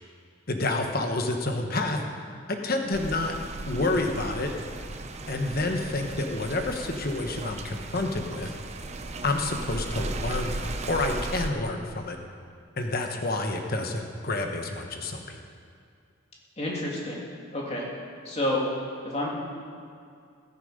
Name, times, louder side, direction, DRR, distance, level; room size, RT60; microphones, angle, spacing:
voice 1, 0.5-2.0 2.5-3.3 3.7-4.5 5.3-8.5 9.2-12.2 12.8-15.4, left 2 dB, 45° left, 4 dB, 1.2 m, -29 dB
sound 1, 2.9-11.5, right 2 dB, 30° right, 0.8 m, -36 dB
voice 2, 16.6-17.2 17.5-17.9 18.2-18.6 19.0-19.3, left 1 dB, 30° left, -3 dB, 2.9 m, -29 dB
15.5 x 13.5 x 5.1 m, 2.3 s
head